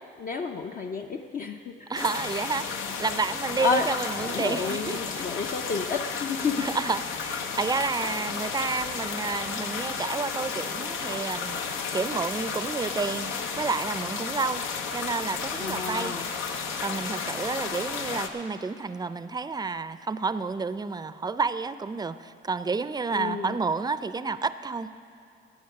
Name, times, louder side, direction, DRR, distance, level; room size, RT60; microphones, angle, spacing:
voice 1, 0.2-1.9 3.6-3.9 4.2-6.7 15.6-16.3 23.1-23.6, left 5 dB, 45° left, 3 dB, 0.6 m, -30 dB
sound 1, 1.9-18.3, left 5 dB, 90° left, 0.9 m, -33 dB
voice 2, 1.9-5.0 6.6-11.6 11.9-14.6 14.9-16.2 16.8-25.0, right 4 dB, 20° right, 13 dB, 0.5 m, -30 dB
15.5 x 9.1 x 5.9 m, 2.4 s
cardioid pair, 90°, 20 cm